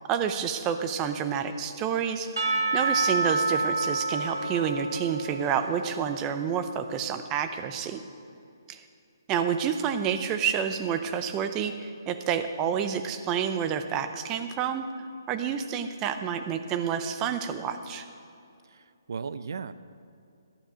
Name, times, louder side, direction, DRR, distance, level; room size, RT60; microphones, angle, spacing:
voice 1, 0.1-2.3 2.7-8.0 8.7-8.8 9.3-14.8 15.3-18.1, right 8 dB, 15° right, 9 dB, 0.5 m, -29 dB
Percussion / Church bell, 2.4-6.5, right 3 dB, 85° right, 1.2 m, -29 dB
voice 2, 18.7-19.7, right 5 dB, 65° right, 14 dB, 0.5 m, -36 dB
12.0 x 10.0 x 5.0 m, 2.6 s
hypercardioid pair, 160°, 2 cm